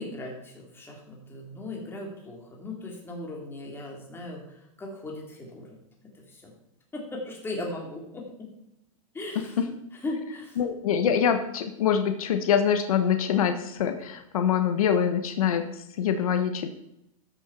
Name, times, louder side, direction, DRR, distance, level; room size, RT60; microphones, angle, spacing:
voice 1, 0.0-6.5 6.9-8.5 9.1-9.6 10.0-10.6, left 2 dB, 10° left, -1 dB, 2.5 m, -38 dB
voice 2, 10.6-16.7, left 8 dB, 85° left, 7 dB, 1.2 m, -25 dB
13.5 x 6.4 x 4.4 m, 0.80 s
supercardioid pair, 145°, 18 cm